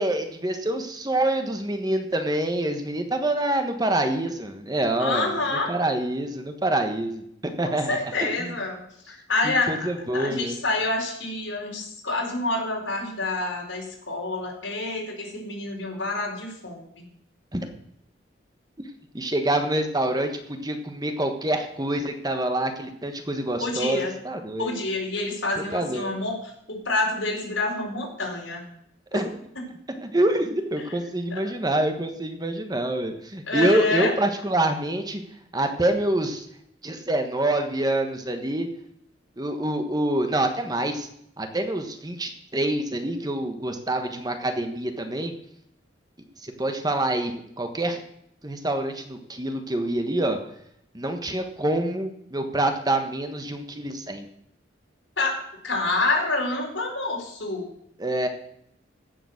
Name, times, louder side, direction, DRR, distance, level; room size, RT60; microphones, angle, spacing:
voice 1, 0.0-5.3 5.7-8.5 9.4-10.6 17.5-17.7 19.1-24.7 25.7-26.2 29.1-29.3 30.0-35.2 35.5-36.5 36.8-38.7 39.4-41.1 41.4-45.3 46.4-48.0 48.4-50.4 50.9-54.2 58.0-58.3, right 1 dB, 20° right, 6 dB, 1.3 m, -26 dB
voice 2, 5.0-5.7 7.6-9.9 10.1-17.0 23.6-24.1 24.6-28.6 29.1-29.2 29.6-29.7 31.3-31.4 33.5-34.2 55.2-55.4 55.6-57.7, left 2 dB, 90° left, -1 dB, 4.7 m, -27 dB
15.5 x 7.0 x 6.5 m, 0.73 s
head